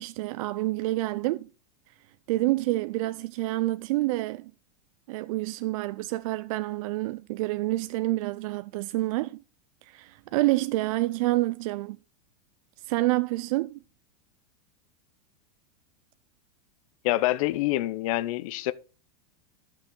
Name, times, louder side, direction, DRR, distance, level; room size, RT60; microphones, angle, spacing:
voice 1, 0.0-1.5 1.9-2.0 2.3-4.5 5.1-9.4 9.8-12.0 12.8-13.8, right 18 dB, 60° right, 0.4 m, -28 dB
voice 2, 17.0-18.7, left 16 dB, 60° left, 0.7 m, -26 dB
12.5 x 5.9 x 3.8 m
supercardioid pair, 150°, 20 cm